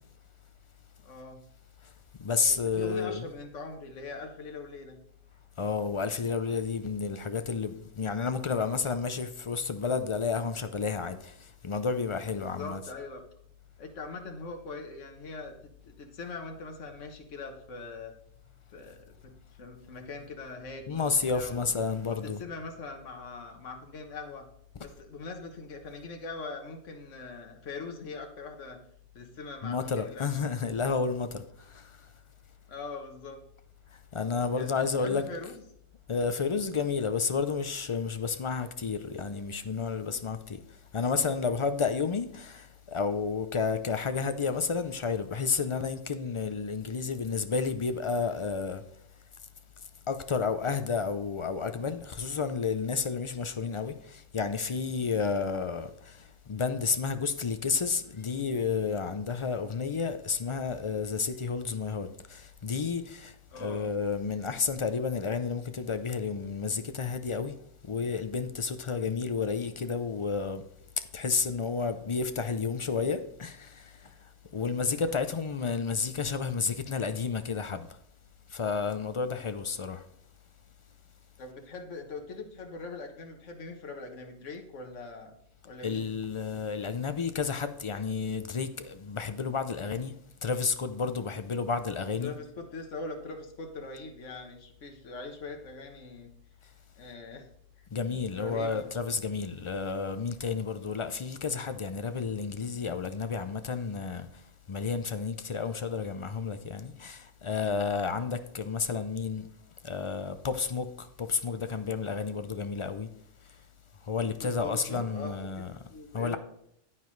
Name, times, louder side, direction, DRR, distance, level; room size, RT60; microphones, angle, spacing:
voice 1, 1.0-1.4 2.5-5.0 12.3-13.2 13.8-15.5 15.8-18.1 18.7-21.7 22.1-24.4 24.8-28.8 29.1-30.4 32.7-33.4 34.5-34.7 35.0-35.5 63.5-63.9 81.4-85.3 85.6-86.1 92.2-96.3 97.0-97.5 98.1-98.9 114.2-115.6 115.9-116.4, left 3 dB, 80° left, 1.5 m, -42 dB
voice 2, 2.2-3.2 5.6-12.8 20.9-22.4 29.6-32.0 33.9-35.2 36.1-40.6 40.9-48.8 50.1-67.5 67.8-70.6 71.1-74.1 74.5-77.9 78.5-80.0 85.8-90.1 90.4-92.3 97.9-104.3 104.7-109.5 109.8-113.1 114.0-115.7 116.1-116.4, left 5 dB, 55° left, 0.3 m, -31 dB
9.5 x 9.2 x 3.2 m
omnidirectional pair, 1.3 m